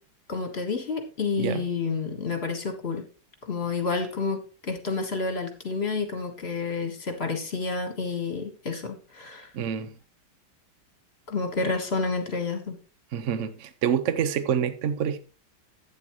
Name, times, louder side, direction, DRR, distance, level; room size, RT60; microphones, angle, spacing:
voice 1, 0.3-3.0 3.5-9.5 11.3-12.8, left 4 dB, 35° left, 1.6 m, -29 dB
voice 2, 9.5-9.9 13.1-15.2, right 8 dB, 65° right, 0.7 m, -27 dB
11.5 x 9.1 x 3.1 m
omnidirectional pair, 2.2 m